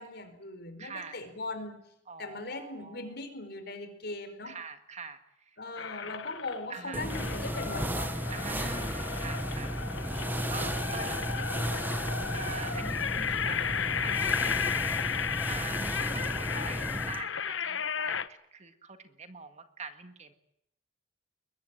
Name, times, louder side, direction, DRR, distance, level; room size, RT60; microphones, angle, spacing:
voice 1, 0.0-1.8 2.2-4.6 5.6-8.7 10.6-11.0, left 2 dB, 60° left, 8 dB, 4.7 m, -40 dB
voice 2, 0.8-1.2 2.1-3.1 4.4-5.6 6.7-7.1 8.3-9.7 10.5-11.9 12.3-13.6 14.0-14.7 15.5-20.3, right 4 dB, 35° right, 8 dB, 1.8 m, -44 dB
sound 1, 5.8-6.7 7.1-18.3, left 7 dB, 75° left, 1.1 m, -34 dB
sound 2, 6.9-17.2, right 1 dB, 10° right, 1.3 m, -34 dB
22.5 x 21.5 x 9.1 m, 0.79 s
head